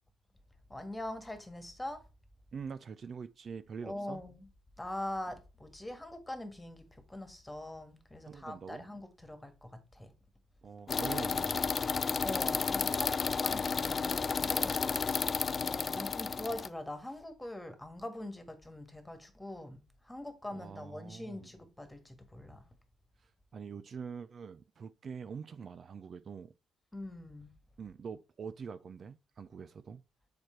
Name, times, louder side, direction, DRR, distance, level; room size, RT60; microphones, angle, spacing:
voice 1, 0.7-2.0 3.8-4.5 4.8-10.1 12.2-15.2 15.6-22.7 26.9-27.5, left 1 dB, 10° left, 1.7 m, -43 dB
voice 2, 2.5-4.2 8.3-8.9 10.6-11.7 20.5-21.5 23.2-26.5 27.8-30.0, right 6 dB, 50° right, 0.4 m, -44 dB
sound 1, 10.9-16.7, left 5 dB, 40° left, 0.5 m, -32 dB
7.3 x 4.6 x 4.5 m
cardioid pair, 90°, 0 cm